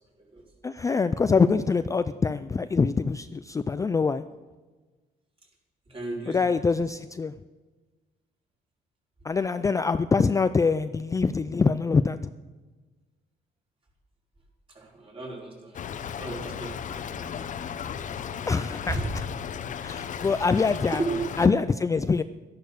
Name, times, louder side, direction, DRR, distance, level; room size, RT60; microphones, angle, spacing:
voice 1, 0.6-4.2 6.3-7.3 9.2-12.2 18.5-19.0 19.8-21.0 21.4-22.2, left 4 dB, 20° left, 12 dB, 0.4 m, -24 dB
voice 2, 5.9-6.8 14.7-15.9 16.1-18.5 18.9-19.1 20.2-20.3 21.0-21.2, right 2 dB, 35° right, -2 dB, 4.6 m, -36 dB
Stream / Trickle dribble, 15.7-21.5, left 8 dB, 50° left, 0.8 m, -35 dB
12.5 x 11.0 x 6.6 m, 1.3 s
cardioid pair, 120°, 17 cm